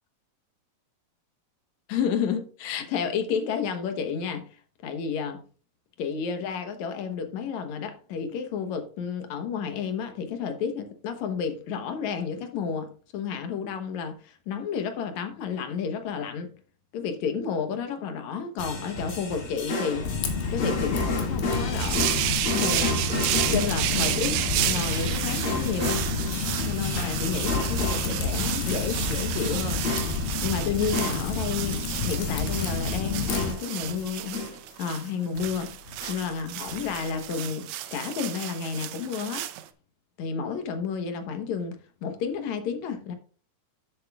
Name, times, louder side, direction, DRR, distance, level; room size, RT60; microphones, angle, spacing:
voice 1, 1.9-4.5 4.8-5.4 6.0-16.5 16.9-20.1 20.5-22.1 22.5-23.1 23.3-26.1 26.6-29.8 30.4-34.5 34.8-35.7 36.1-39.5 40.2-43.1, left 6 dB, 65° left, 2.2 m, -31 dB
sound 1, 18.6-30.5 30.8-31.4 32.1-32.9 33.3-35.1 35.3-36.3 36.5-37.1, left 2 dB, 45° left, 2.6 m, -33 dB
Typing, 20.0-33.5, left 4 dB, 90° left, 3.2 m, -30 dB
sound 2, 21.8-39.6, right 13 dB, 75° right, 1.7 m, -32 dB
13.0 x 7.4 x 2.3 m
omnidirectional pair, 3.9 m